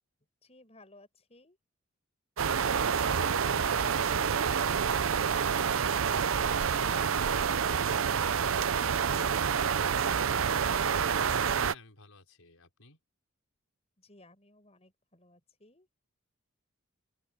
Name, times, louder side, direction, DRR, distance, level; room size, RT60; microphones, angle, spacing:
voice 1, 0.4-1.6 14.0-15.9, left 2 dB, 30° left, 6.8 m, -58 dB
sound 1, 2.4-11.7, right 7 dB, 70° right, 0.6 m, -28 dB
voice 2, 5.3-5.7 8.1-8.7 11.1-13.0, left 3 dB, 85° left, 4.6 m, -54 dB
open air
head